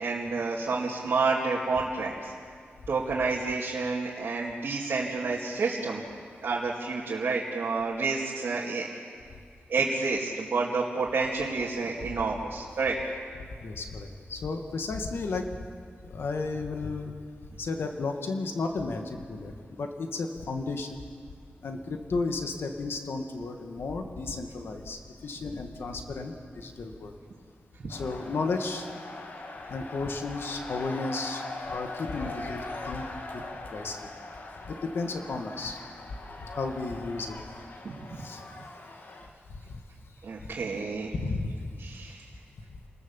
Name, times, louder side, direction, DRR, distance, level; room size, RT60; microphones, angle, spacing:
voice 1, 0.0-2.3 2.9-6.0 6.4-8.9 9.7-12.9 37.8-37.9 40.2-41.1 41.8-42.2, right 4 dB, 70° right, -4 dB, 2.6 m, -29 dB
voice 2, 13.6-15.5 16.0-17.1 17.6-21.0 21.6-27.1 27.9-28.9 29.7-33.1 33.3-33.4 33.7-34.1 34.7-35.8 36.4-37.3 38.2-38.4 39.5-39.8 40.4-40.5 41.1-41.7, left 3 dB, 75° left, 4 dB, 1.9 m, -33 dB
sound 1, 27.9-39.3, left 2 dB, 55° left, 2.2 m, -41 dB
29.0 x 20.0 x 7.3 m, 2.1 s
wide cardioid pair, 165°, 4 cm